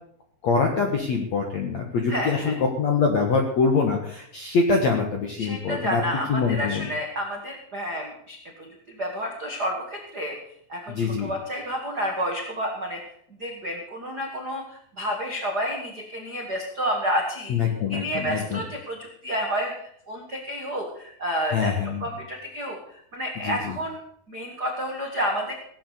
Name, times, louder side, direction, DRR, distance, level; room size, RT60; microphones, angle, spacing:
voice 1, 0.4-6.0 6.3-6.9 10.9-11.3 17.5-18.6 21.5-22.1 23.4-23.8, left 4 dB, 70° left, 2 dB, 1.6 m, -24 dB
voice 2, 2.1-2.5 5.4-8.7 9.0-10.3 10.7-13.0 13.4-17.5 17.9-19.7 20.1-21.7 22.0-22.8 23.1-24.0 24.3-25.5, equal, 90° right, 0 dB, 0.8 m, -30 dB
18.0 x 8.5 x 6.7 m, 0.66 s
omnidirectional pair, 5.5 m